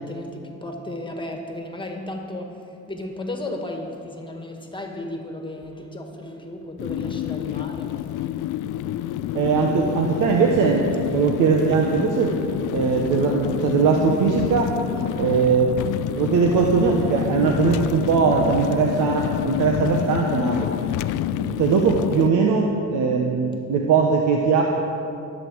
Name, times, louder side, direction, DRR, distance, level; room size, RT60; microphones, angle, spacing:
voice 1, 0.0-8.3 14.9-15.3 20.5-21.0, left 1 dB, 15° left, 3 dB, 1.7 m, -34 dB
sound 1, 6.8-22.3, left 12 dB, 85° left, 0.5 m, -28 dB
voice 2, 9.3-12.4 12.7-14.7 15.1-15.7 16.2-20.6 21.4-24.6, right 5 dB, 85° right, 1 dB, 1.1 m, -20 dB
22.5 x 7.7 x 4.7 m, 2.7 s
cardioid pair, 90°, 30 cm